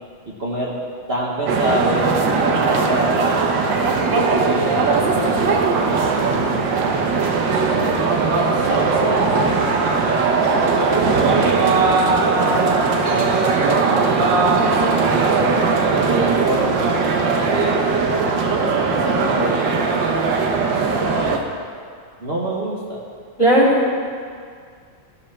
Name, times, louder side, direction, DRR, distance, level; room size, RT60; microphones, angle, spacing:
voice 1, 0.2-0.7 1.1-3.6 4.4-5.5 5.8-6.2 7.4-10.2 10.7-14.3 14.8-16.7 17.0-17.8 18.5-19.8 21.1-21.3 22.2-23.0, right 1 dB, 35° right, -6 dB, 1.3 m, -28 dB
sound 1, 1.5-21.4, right 4 dB, 65° right, 1.5 m, -19 dB
voice 2, 23.4-23.9, right 1 dB, 15° left, -6 dB, 2.3 m, -16 dB
16.5 x 5.6 x 5.9 m, 2.1 s
omnidirectional pair, 2.3 m